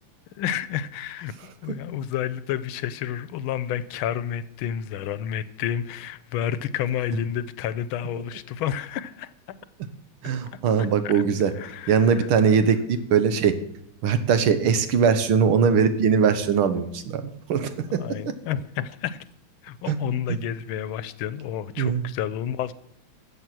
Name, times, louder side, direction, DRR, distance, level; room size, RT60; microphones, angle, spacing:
voice 1, 0.4-1.3 1.6-9.3 11.0-11.2 11.6-12.0 18.0-19.2 19.6-22.7, left 10 dB, 85° left, 16 dB, 1.5 m, -30 dB
voice 2, 10.2-11.5 11.9-13.6 14.0-18.0 19.9-20.0 20.3-20.4 21.8-22.1, right 6 dB, 90° right, 10 dB, 2.0 m, -21 dB
14.0 x 7.9 x 6.1 m, 0.70 s
omnidirectional pair, 2.3 m